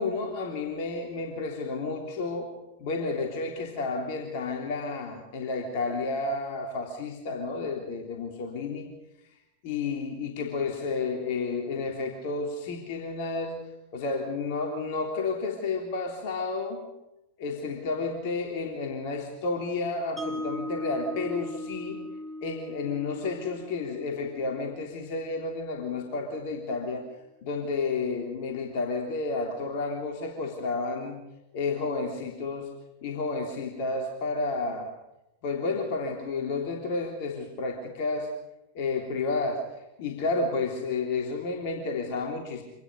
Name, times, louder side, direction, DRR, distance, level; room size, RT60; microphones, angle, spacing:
voice 1, 0.0-2.5 2.8-8.9 9.6-13.6 13.9-16.8 17.4-22.0 22.4-27.1 27.4-31.2 31.5-32.7 33.0-34.9 35.4-38.3 38.7-39.6 40.0-42.6, left 3 dB, 50° left, 2 dB, 3.4 m, -31 dB
Mallet percussion, 20.2-26.3, left 1 dB, ahead, 3.8 m, -39 dB
26.0 x 19.5 x 5.3 m, 0.91 s
figure-of-eight pair, 90°, 0 cm